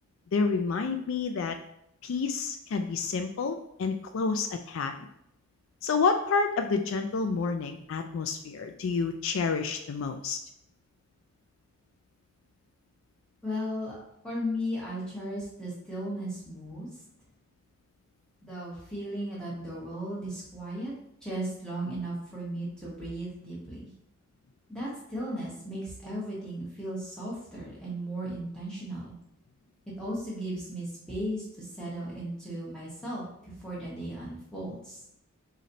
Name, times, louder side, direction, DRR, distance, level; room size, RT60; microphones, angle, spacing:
voice 1, 0.3-1.6 2.0-5.1 5.8-10.4, left 4 dB, 70° left, 7 dB, 0.3 m, -29 dB
voice 2, 13.4-14.0 14.2-16.9 18.4-20.9 21.2-23.9 24.7-29.2 30.0-35.0, equal, 5° left, -7 dB, 1.4 m, -36 dB
4.0 x 3.1 x 4.1 m, 0.75 s
head